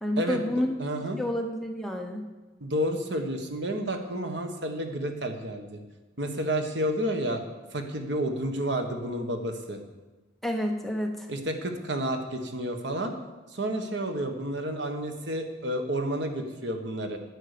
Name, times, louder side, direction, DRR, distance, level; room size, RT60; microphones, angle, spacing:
voice 1, 0.0-0.8 1.2-2.3 10.4-11.3, left 1 dB, ahead, 2 dB, 0.9 m, -29 dB
voice 2, 0.8-1.2 2.6-5.8 6.2-7.4 7.7-9.8 11.3-13.1 13.5-17.2, right 1 dB, 65° right, 5 dB, 1.5 m, -30 dB
9.7 x 9.5 x 6.8 m, 1.2 s
head